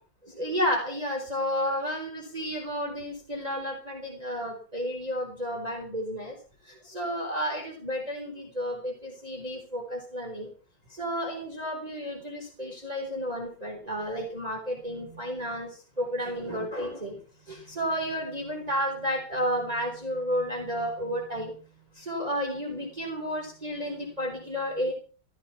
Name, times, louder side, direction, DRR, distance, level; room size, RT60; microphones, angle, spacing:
voice 1, 0.3-6.4 6.6-10.5 10.9-17.2 17.5-21.5 21.9-24.9, equal, 15° right, -1 dB, 4.2 m, -32 dB
16.5 x 14.0 x 5.8 m, 0.39 s
omnidirectional pair, 2.3 m